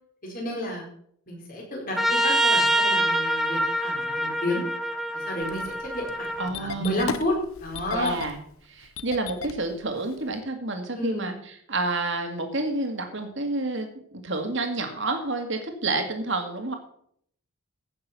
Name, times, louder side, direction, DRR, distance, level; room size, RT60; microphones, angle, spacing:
voice 1, 0.2-0.9 1.3-4.6 5.1-8.2 11.0-11.3, left 1 dB, 40° left, -1 dB, 4.1 m, -31 dB
Trumpet, 2.0-6.5, right 1 dB, ahead, 0.5 m, -25 dB
Engine starting, 5.4-10.4, left 5 dB, 75° left, 0.8 m, -37 dB
voice 2, 6.4-7.1 7.9-8.4 8.7-11.3 11.7-16.7, right 2 dB, 55° right, 5 dB, 2.1 m, -29 dB
15.5 x 6.6 x 5.8 m, 0.65 s
head